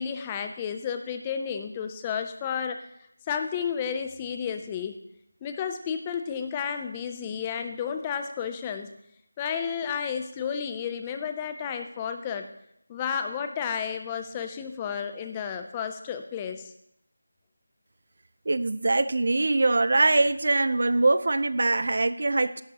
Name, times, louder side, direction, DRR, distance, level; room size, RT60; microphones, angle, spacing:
voice 1, 0.0-2.9 3.3-5.0 5.4-8.9 9.4-12.5 12.9-16.7, left 7 dB, 10° left, 7 dB, 0.4 m, -32 dB
voice 2, 18.5-22.6, right 2 dB, 45° right, 15 dB, 0.5 m, -23 dB
16.0 x 11.5 x 2.9 m, 0.73 s
figure-of-eight pair, 175°, 0 cm